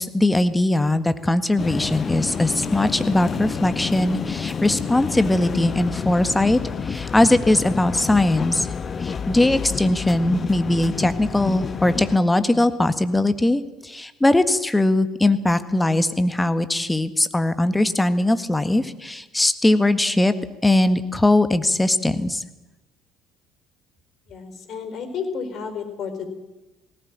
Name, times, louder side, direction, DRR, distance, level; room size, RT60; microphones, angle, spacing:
voice 1, 0.0-8.7 9.0-20.3 20.6-22.4, left 1 dB, 10° left, 11 dB, 1.8 m, -20 dB
sound 1, 1.6-12.2, left 6 dB, 35° left, 1.2 m, -29 dB
voice 2, 24.3-26.3, left 6 dB, 50° left, 8 dB, 4.5 m, -31 dB
19.0 x 18.0 x 8.9 m, 1.0 s
hypercardioid pair, 60°, 0 cm